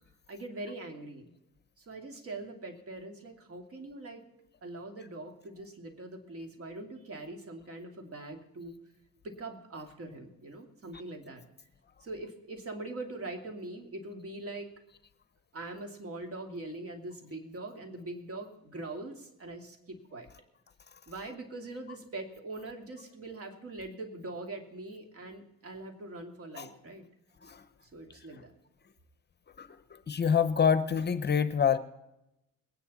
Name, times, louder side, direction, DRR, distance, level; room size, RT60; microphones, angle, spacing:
voice 1, 0.3-1.3 1.8-4.2 4.6-8.8 9.2-11.4 12.0-14.7 15.5-20.3 21.1-27.0 27.8-28.5, right 2 dB, 50° right, 4 dB, 2.5 m, -42 dB
voice 2, 30.1-31.8, left 7 dB, 35° left, 12 dB, 0.8 m, -26 dB
21.5 x 9.7 x 4.1 m, 0.87 s
cardioid pair, 90°, 30 cm